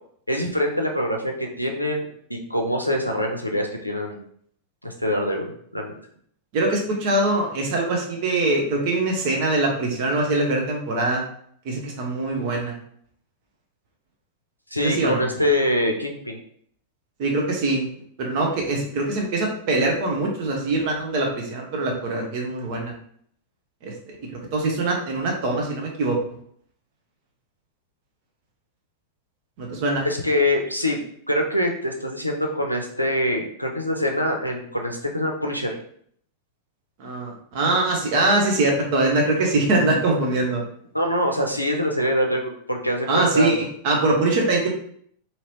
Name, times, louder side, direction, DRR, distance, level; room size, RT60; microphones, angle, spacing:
voice 1, 0.3-4.2 4.8-5.9 14.7-16.4 30.0-31.0 31.3-35.8 40.9-43.5, left 1 dB, 90° left, 2 dB, 0.5 m, -24 dB
voice 2, 6.5-11.2 11.6-12.8 14.8-15.2 17.2-17.9 18.2-22.9 23.8-24.2 24.5-26.2 29.6-30.1 37.0-40.6 43.1-44.7, right 2 dB, 45° right, 0 dB, 0.8 m, -23 dB
2.8 x 2.8 x 3.0 m, 0.63 s
figure-of-eight pair, 90°, 0 cm